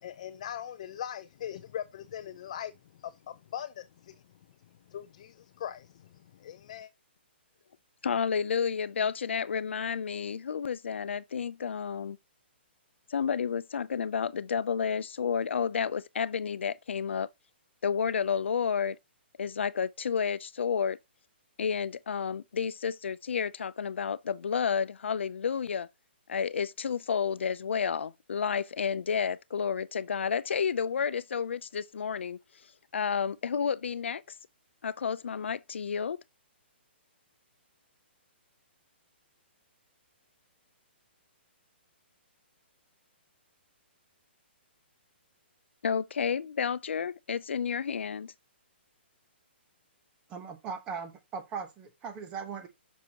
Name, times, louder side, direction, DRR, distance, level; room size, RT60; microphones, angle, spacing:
voice 1, 0.0-2.7 3.0-4.2 4.9-6.1 6.4-6.9, left 10 dB, 35° left, 0.4 m, -40 dB
voice 2, 8.0-12.2 13.1-17.3 17.8-19.0 19.4-21.0 21.6-25.9 26.3-32.4 32.9-34.2 34.8-36.2 45.8-48.3, left 6 dB, 85° left, 0.6 m, -31 dB
voice 3, 50.3-52.7, right 6 dB, 15° right, 1.1 m, -39 dB
8.3 x 6.4 x 2.9 m
hypercardioid pair, 170°, 6 cm